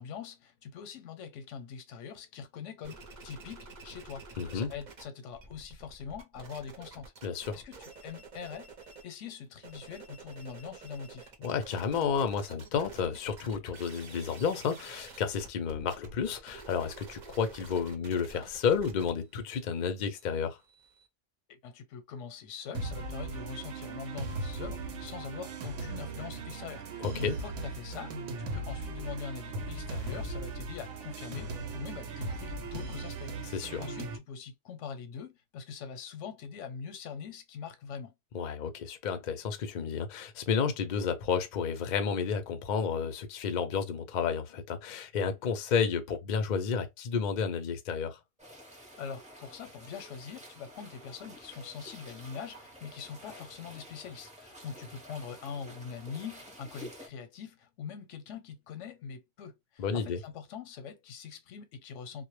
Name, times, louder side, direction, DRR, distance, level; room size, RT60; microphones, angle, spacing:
voice 1, 0.0-7.1 7.5-8.7 9.0-11.3 21.6-33.3 33.6-38.1 49.0-62.3, left 6 dB, 90° left, 0.9 m, -43 dB
sound 1, 2.8-5.0 5.3-9.1 9.5-21.1, right 3 dB, 50° right, 0.6 m, -50 dB
voice 2, 4.4-4.7 7.2-7.6 11.4-20.6 27.0-27.4 33.5-33.8 38.3-48.2 59.8-60.2, left 6 dB, 60° left, 0.5 m, -31 dB
sound 2, 22.7-34.2, right 2 dB, 85° right, 0.9 m, -38 dB
sound 3, 48.4-57.1, equal, 10° right, 0.6 m, -50 dB
2.1 x 2.1 x 2.9 m
omnidirectional pair, 1.2 m